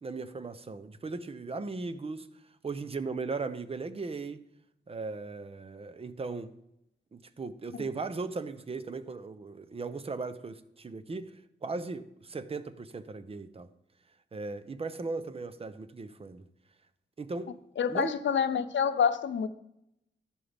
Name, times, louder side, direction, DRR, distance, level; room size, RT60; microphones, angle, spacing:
voice 1, 0.0-2.3 2.6-4.4 4.9-6.5 7.1-13.7 14.3-16.5 17.2-17.6 17.9-18.1, right 3 dB, 30° right, 0.7 m, -37 dB
voice 2, 17.8-19.5, left 7 dB, 80° left, 0.7 m, -27 dB
13.0 x 11.0 x 3.5 m
wide cardioid pair, 135°, 19 cm